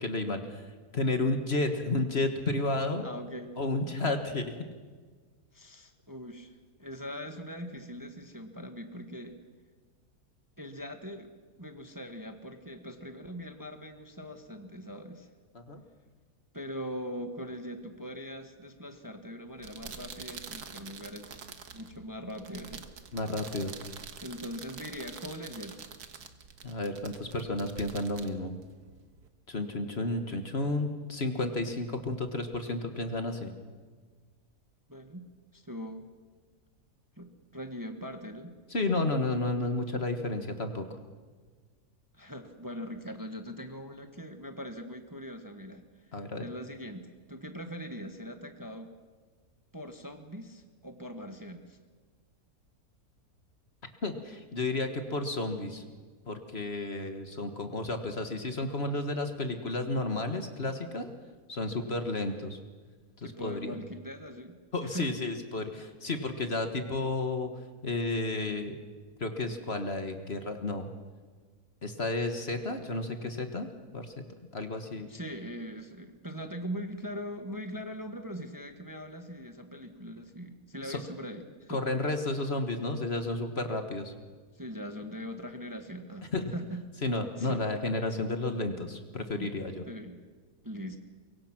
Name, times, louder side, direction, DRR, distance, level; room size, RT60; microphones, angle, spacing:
voice 1, 0.0-0.6 0.9-3.0 3.6-4.5 15.5-15.8 23.1-23.7 26.6-28.5 29.5-33.5 38.7-40.8 46.1-46.4 54.0-55.8 56.3-61.1 61.5-62.6 63.2-63.8 64.7-67.5 67.8-68.8 69.2-70.9 71.8-73.7 73.9-74.2 74.5-75.1 80.9-81.0 81.7-84.1 86.3-86.5 87.0-89.8, left 2 dB, 45° left, 6 dB, 1.7 m, -32 dB
voice 2, 3.0-3.5 5.5-6.5 6.8-9.4 10.6-11.3 11.6-15.3 16.5-21.4 21.7-22.8 24.2-25.8 34.9-36.1 37.2-38.5 42.1-48.9 49.7-51.8 63.2-65.1 75.1-81.8 84.5-86.8 87.4-87.6 89.3-89.5 89.9-90.2 90.6-91.0, equal, 15° right, 6 dB, 1.3 m, -41 dB
sound 1, 19.5-29.3, right 6 dB, 80° right, 1.8 m, -46 dB
23.5 x 23.5 x 6.0 m, 1.5 s
omnidirectional pair, 1.6 m